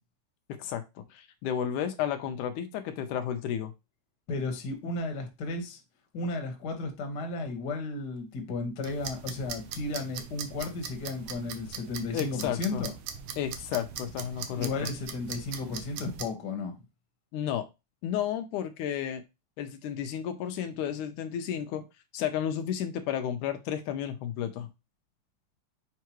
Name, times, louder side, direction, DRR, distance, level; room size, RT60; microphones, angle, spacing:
voice 1, 0.6-3.7 12.1-12.8 13.4-14.7 17.3-17.7 18.0-19.2 19.6-21.9 22.1-24.7, left 9 dB, 85° left, 2.3 m, -32 dB
voice 2, 4.3-5.8 6.1-12.9 14.5-16.7, left 3 dB, 45° left, 1.7 m, -34 dB
sound 1, 8.8-16.2, right 7 dB, 70° right, 1.4 m, -41 dB
7.5 x 4.7 x 3.0 m
omnidirectional pair, 3.5 m